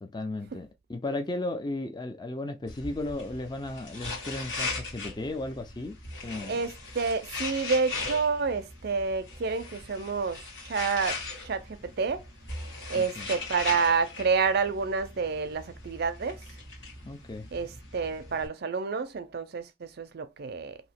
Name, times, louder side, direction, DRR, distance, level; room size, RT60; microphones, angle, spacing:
voice 1, 0.0-6.6 12.9-13.3 17.0-17.5, left 2 dB, 20° left, 0.4 m, -35 dB
sound 1, 2.7-18.5, left 3 dB, 60° left, 1.6 m, -39 dB
voice 2, 6.4-12.2 12.9-16.4 17.5-20.8, right 5 dB, 50° right, 0.4 m, -29 dB
2.9 x 2.7 x 4.2 m
head